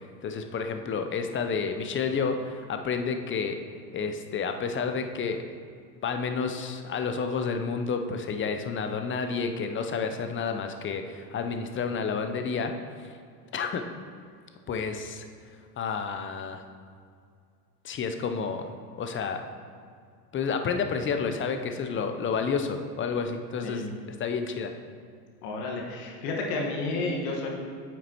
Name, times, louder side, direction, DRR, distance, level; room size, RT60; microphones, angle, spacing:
voice 1, 0.2-3.6 3.9-5.4 6.0-13.2 13.5-13.9 14.7-15.3 15.8-16.6 17.8-19.4 20.3-24.7, left 5 dB, 25° left, 6 dB, 0.6 m, -30 dB
voice 2, 23.6-24.0 25.4-27.5, left 2 dB, 70° left, 0 dB, 1.5 m, -31 dB
8.8 x 6.0 x 2.9 m, 2.2 s
hypercardioid pair, 80°, 48 cm